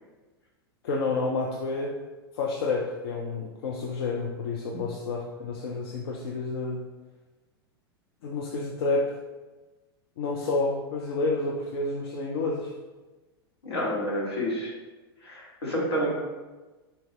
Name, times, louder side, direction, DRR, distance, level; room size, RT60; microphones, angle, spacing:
voice 1, 0.8-2.0 2.3-6.8 8.2-9.2 10.2-12.7, left 3 dB, 65° left, -2 dB, 0.5 m, -29 dB
voice 2, 13.6-14.7 15.2-16.1, equal, 85° left, -4 dB, 1.2 m, -29 dB
4.2 x 2.3 x 3.3 m, 1.2 s
hypercardioid pair, 95°, 13 cm